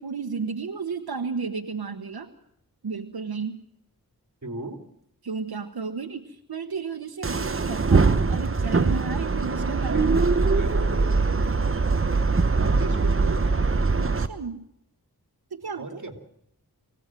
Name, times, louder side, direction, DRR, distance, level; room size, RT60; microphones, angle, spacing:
voice 1, 0.0-2.3 2.8-3.6 5.2-10.3 14.0-14.6 15.5-16.0, right 5 dB, 85° right, 6 dB, 1.2 m, -33 dB
voice 2, 4.4-4.8 9.9-11.2 12.6-13.6 15.8-16.2, right 2 dB, 50° right, 6 dB, 2.9 m, -35 dB
sound 1, 7.2-14.3, right 4 dB, 35° right, 1.0 m, -22 dB
24.0 x 17.0 x 7.6 m, 0.75 s
wide cardioid pair, 75°, 37 cm